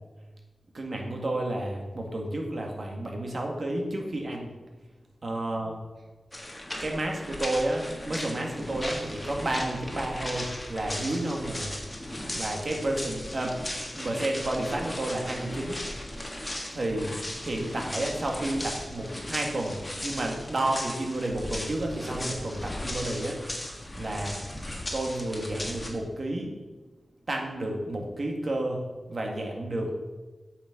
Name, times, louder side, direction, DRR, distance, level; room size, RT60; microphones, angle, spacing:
voice 1, 0.7-4.5 5.2-5.8 6.8-11.7 12.3-15.8 16.7-17.2 17.4-23.4 24.0-24.4 24.9-26.6 27.3-28.8 29.1-29.9, right 1 dB, 40° right, 1 dB, 1.9 m, -31 dB
sound 1, 6.3-25.9, left 1 dB, 15° left, 1.5 m, -37 dB
8.4 x 6.3 x 7.1 m, 1.2 s
wide cardioid pair, 145°, 0 cm